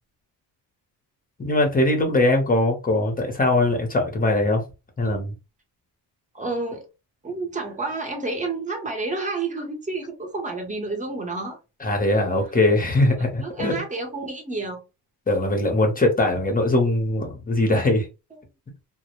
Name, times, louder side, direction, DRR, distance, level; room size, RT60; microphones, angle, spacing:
voice 1, 1.4-4.6 5.0-5.3 11.8-13.7 15.3-18.1, left 2 dB, 20° left, 0.7 m, -21 dB
voice 2, 6.3-6.8 7.2-11.6 13.2-14.8 18.3-18.4, right 3 dB, 15° right, 0.8 m, -30 dB
2.1 x 2.0 x 2.9 m
cardioid pair, 115°, 42 cm